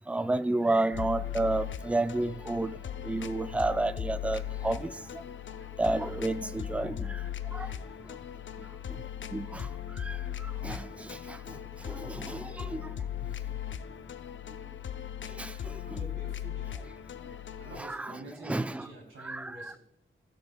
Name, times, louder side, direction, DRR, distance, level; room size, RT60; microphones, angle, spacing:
voice 1, 0.1-2.7 3.0-4.9 5.8-7.2 7.5-7.7 9.3-9.7 10.0-10.2 10.6-11.6 11.9-12.8 15.4-15.5 15.9-16.0 17.8-18.2 18.5-18.9 19.2-19.8, right 2 dB, 5° right, 0.4 m, -31 dB
sound 1, 0.9-17.8, left 10 dB, 65° left, 0.6 m, -38 dB
voice 2, 15.8-16.8 17.6-19.8, right 1 dB, 85° right, 3.0 m, -47 dB
16.5 x 6.9 x 2.3 m
wide cardioid pair, 90°, 21 cm